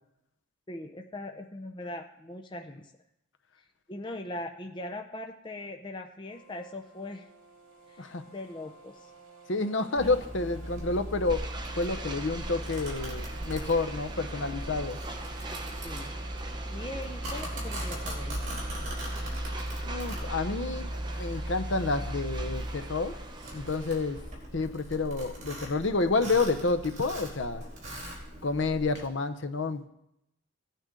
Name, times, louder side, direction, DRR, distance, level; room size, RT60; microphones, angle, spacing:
voice 1, 0.7-2.9 3.9-7.3 7.9-9.1 15.8-16.1 16.7-18.6, left 1 dB, 20° left, 3 dB, 0.6 m, -40 dB
sound 1, 6.3-23.7, right 6 dB, 75° right, 2.1 m, -53 dB
voice 2, 9.5-11.4 11.8-15.0 19.8-20.9 21.2-23.1 23.5-24.2 24.5-27.6 28.4-29.9, left 3 dB, 55° left, 8 dB, 0.8 m, -29 dB
Domestic sounds home sounds, 10.0-29.1, equal, 35° right, 3.8 m, -37 dB
sound 2, 11.3-24.3, right 3 dB, 20° right, 0.8 m, -44 dB
17.0 x 9.2 x 3.8 m, 0.82 s
head